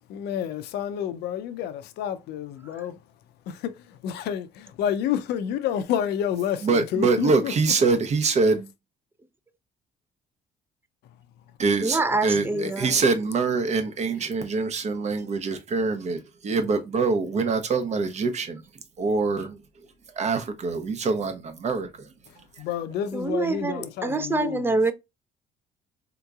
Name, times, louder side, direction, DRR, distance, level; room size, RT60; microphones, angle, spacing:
voice 1, 0.1-3.0 3.5-7.7 12.5-13.0 22.3-24.8, left 9 dB, 75° left, 0.5 m, -30 dB
voice 2, 6.6-8.7 11.6-18.6 19.0-19.6 20.1-22.1, right 4 dB, 40° right, 0.8 m, -24 dB
voice 3, 11.8-13.0 23.1-24.9, right 3 dB, 15° right, 0.4 m, -26 dB
3.7 x 2.9 x 2.3 m
cardioid pair, 110°, 17 cm